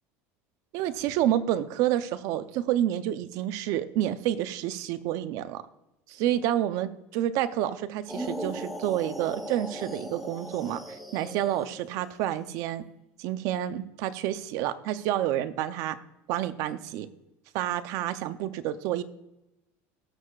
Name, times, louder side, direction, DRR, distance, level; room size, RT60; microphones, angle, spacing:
voice 1, 0.7-5.6 6.1-10.8 11.1-12.8 13.2-16.0 16.3-17.1 17.5-19.0, right 12 dB, 60° right, 12 dB, 0.6 m, -29 dB
sound 1, 8.1-12.0, equal, ahead, 1.1 m, -38 dB
18.0 x 6.5 x 2.4 m, 0.93 s
cardioid pair, 150°, 6 cm